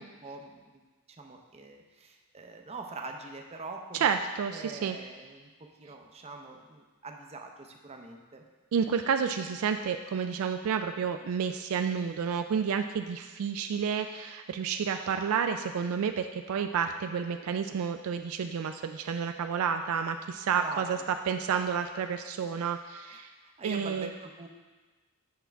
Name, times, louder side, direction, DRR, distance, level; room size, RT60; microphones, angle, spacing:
voice 1, 0.0-4.1 4.5-8.4 20.6-21.0 23.1-24.5, right 3 dB, 30° right, 3 dB, 0.6 m, -44 dB
voice 2, 3.9-5.0 8.7-21.0 21.3-23.3 23.6-24.1, right 6 dB, 65° right, 7 dB, 0.3 m, -30 dB
8.4 x 5.8 x 3.4 m, 1.3 s
head